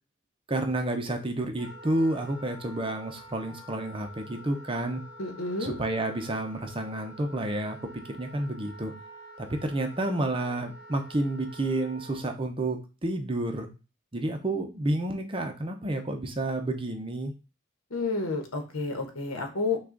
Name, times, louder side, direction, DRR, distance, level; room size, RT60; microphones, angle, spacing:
voice 1, 0.5-5.0 5.6-8.9 9.4-13.7 14.1-17.3, right 1 dB, 25° right, 5 dB, 0.6 m, -30 dB
Wind instrument woodwind instrument, 1.6-12.2, equal, 40° left, 2.2 m, -48 dB
voice 2, 5.2-5.7 17.9-19.8, left 3 dB, 75° left, 5 dB, 1.0 m, -30 dB
5.9 x 2.4 x 3.8 m, 0.31 s
head